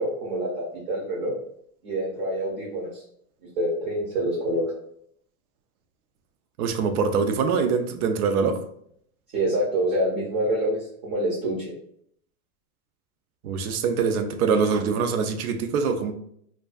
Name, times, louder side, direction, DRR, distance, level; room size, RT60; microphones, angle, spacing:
voice 1, 0.0-1.3 1.8-3.0 3.6-4.7 9.3-11.7, right 1 dB, 25° right, -4 dB, 0.4 m, -26 dB
voice 2, 6.6-8.6 13.4-16.1, right 5 dB, 80° right, 7 dB, 0.5 m, -24 dB
2.4 x 2.2 x 2.3 m, 0.68 s
supercardioid pair, 155°, 43 cm